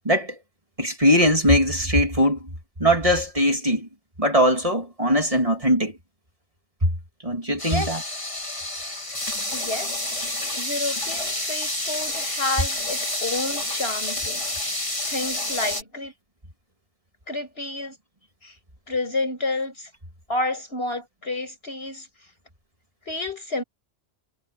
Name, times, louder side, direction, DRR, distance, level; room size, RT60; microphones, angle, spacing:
voice 1, 0.0-0.4 0.8-2.4 2.8-3.9 4.2-5.9 7.2-8.0, equal, 30° right, 2.8 m, -20 dB
sound 1, 7.6-15.8, left 1 dB, 30° left, 3.3 m, -29 dB
voice 2, 9.5-9.9 10.6-14.4 15.1-16.1 17.3-18.0 18.4-18.5 18.9-19.9 20.3-22.1 23.1-23.6, left 2 dB, 70° left, 6.7 m, -30 dB
omnidirectional pair, 1.1 m